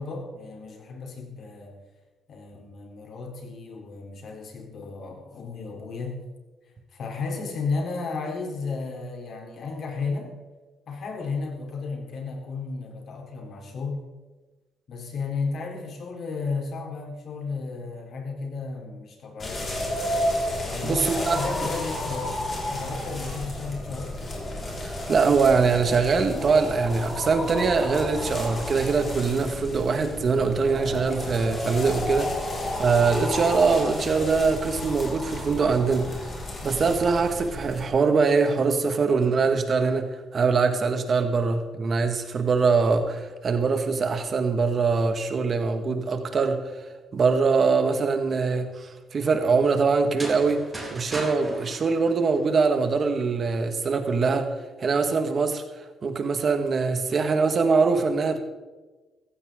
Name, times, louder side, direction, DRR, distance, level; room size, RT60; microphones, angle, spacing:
voice 1, 0.0-1.7 2.3-6.2 6.9-10.4 10.9-14.0 14.9-19.9 20.6-24.2, left 4 dB, 60° left, 2 dB, 3.9 m, -33 dB
sound 1, 19.4-37.9, left 1 dB, 35° left, 5.2 m, -32 dB
voice 2, 20.8-21.4 24.9-32.3 32.8-36.3 36.6-40.1 40.3-46.6 47.1-50.6 50.9-54.5 54.8-55.6 56.0-58.4, right 4 dB, 45° right, 6 dB, 2.0 m, -23 dB
sound 2, 50.0-52.9, right 2 dB, 20° right, 5.5 m, -38 dB
16.0 x 15.0 x 4.0 m, 1.2 s
cardioid pair, 90°, 0 cm